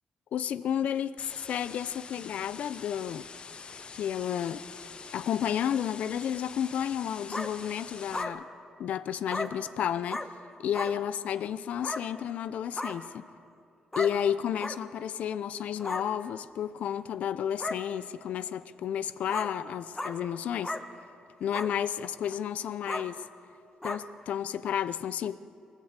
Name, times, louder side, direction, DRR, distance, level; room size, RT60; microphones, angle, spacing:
voice 1, 0.3-3.3 3.9-4.6 5.1-8.5 8.8-10.3 10.6-13.3 14.0-20.8 21.4-23.2 23.8-25.4, left 9 dB, 80° left, 0.7 m, -32 dB
sound 1, 1.2-8.2, left 5 dB, 45° left, 1.0 m, -45 dB
sound 2, 7.3-7.5 8.1-8.3 9.3-9.5 10.1-10.3 10.7-10.9 11.8-12.0 12.7-12.9 13.9-14.1 14.6-14.7 15.8-16.0 16.9-17.0 17.6-17.8 18.3-18.4 19.3-19.5 19.9-20.1 20.6-20.8 21.5-21.7 22.2-22.4 22.9-23.0 23.8-24.0, left 2 dB, 15° left, 2.1 m, -34 dB
23.0 x 19.5 x 8.2 m
cardioid pair, 85°, 2 cm